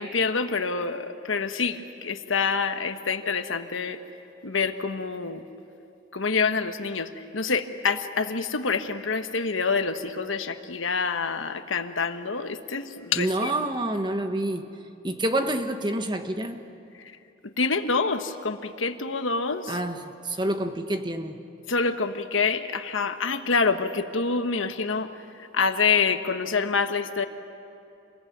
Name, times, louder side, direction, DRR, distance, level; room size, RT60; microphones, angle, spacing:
voice 1, 0.0-4.0 4.4-5.4 6.1-13.5 17.4-19.8 21.7-25.1 25.5-27.3, left 4 dB, 90° left, 8 dB, 1.3 m, -26 dB
voice 2, 13.1-14.7 15.0-16.6 19.7-21.4, right 1 dB, 25° right, 7 dB, 1.2 m, -28 dB
27.5 x 21.5 x 9.4 m, 2.8 s
head